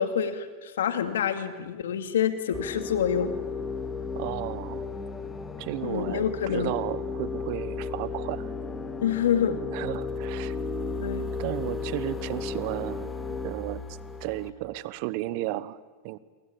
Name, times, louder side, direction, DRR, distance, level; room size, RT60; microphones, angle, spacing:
voice 1, 0.0-3.3 5.8-6.7 9.0-9.6 11.0-11.3, left 8 dB, 85° left, 10 dB, 2.4 m, -27 dB
sound 1, 2.5-14.5, left 4 dB, 15° left, 2.3 m, -34 dB
voice 2, 4.1-4.9 5.6-8.5 9.5-10.6 11.4-13.8 14.2-16.2, right 17 dB, 60° right, 18 dB, 1.2 m, -34 dB
28.0 x 23.0 x 8.7 m, 1.3 s
hypercardioid pair, 105°, 0 cm